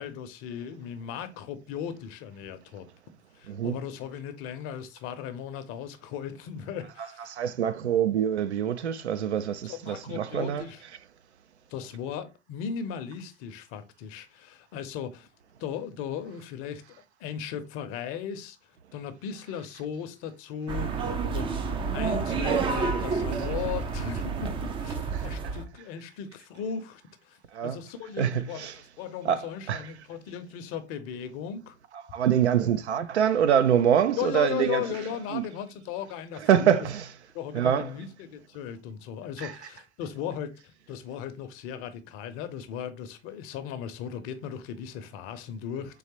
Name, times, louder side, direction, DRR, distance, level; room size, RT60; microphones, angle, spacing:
voice 1, 0.0-2.9 3.3-7.3 9.6-10.8 11.7-15.3 15.6-18.6 18.9-21.5 21.9-31.8 34.2-36.9 37.3-46.0, left 8 dB, 45° left, 0.7 m, -37 dB
voice 2, 3.5-3.8 7.0-10.7 23.4-23.5 25.1-25.3 27.5-27.8 28.2-28.7 29.2-29.9 31.9-34.8 35.3-35.4 36.4-37.1 37.5-37.9 39.4-39.5, right 9 dB, 85° right, 0.5 m, -25 dB
sound 1, 20.7-25.7, right 5 dB, 15° right, 0.3 m, -29 dB
3.9 x 3.1 x 2.9 m
hypercardioid pair, 90°, 33 cm